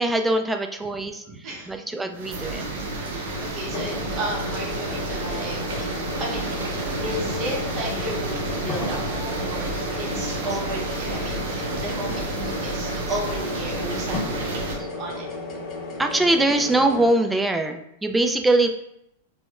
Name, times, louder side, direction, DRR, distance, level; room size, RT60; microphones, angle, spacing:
voice 1, 0.0-2.7 4.1-4.2 10.4-10.6 11.2-12.1 12.9-13.2 14.8-14.9 16.0-18.7, right 2 dB, 10° right, 6 dB, 0.3 m, -24 dB
voice 2, 1.3-2.0 3.1-5.8 6.2-6.7 7.0-12.2 12.6-15.3, right 1 dB, 35° right, -2 dB, 0.8 m, -34 dB
sound 1, 2.1-14.8, right 2 dB, 65° right, 0.7 m, -30 dB
sound 2, 3.7-17.1, left 2 dB, 35° left, 0.7 m, -34 dB
4.0 x 2.1 x 2.3 m, 0.78 s
hypercardioid pair, 110°, 0 cm